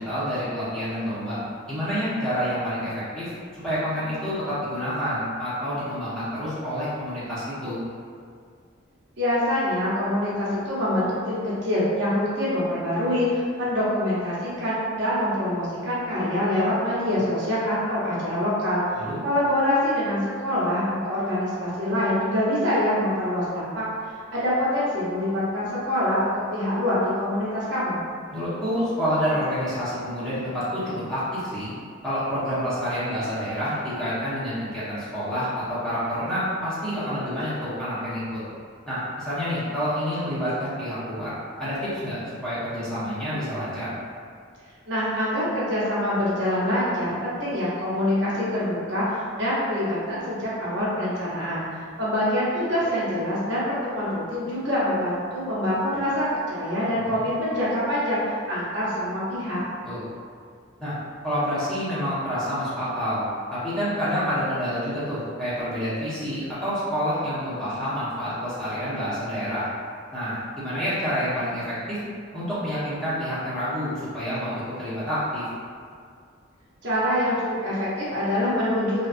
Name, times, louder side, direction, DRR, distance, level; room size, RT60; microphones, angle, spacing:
voice 1, 0.0-1.4 1.7-7.8 19.0-19.2 28.3-31.7 32.0-38.4 38.9-43.9 57.1-57.2 59.8-60.0 60.8-60.9 61.2-63.2 63.5-69.7 70.1-72.0 72.3-75.5, equal, 5° left, -14 dB, 1.0 m, -28 dB
voice 2, 9.2-28.0 44.9-51.6 52.0-59.6 76.8-79.1, left 1 dB, 60° right, -9 dB, 0.9 m, -25 dB
3.1 x 2.9 x 2.5 m, 2.1 s
head